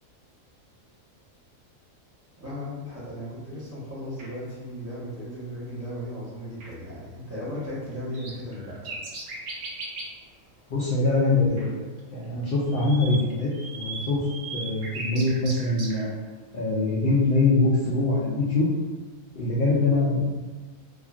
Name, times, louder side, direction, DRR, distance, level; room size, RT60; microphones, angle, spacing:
voice 1, 2.4-9.0, equal, 15° right, -9 dB, 0.7 m, -36 dB
sound 1, 4.2-4.3 6.6-6.7 7.9-10.2 11.6-11.7 12.0-16.1, right 3 dB, 75° right, 1.0 m, -37 dB
voice 2, 10.7-11.7 12.1-14.2 14.5-16.1 16.5-18.7 19.4-20.2, left 2 dB, 65° left, -6 dB, 0.5 m, -23 dB
2.9 x 2.4 x 2.4 m, 1.3 s
omnidirectional pair, 1.5 m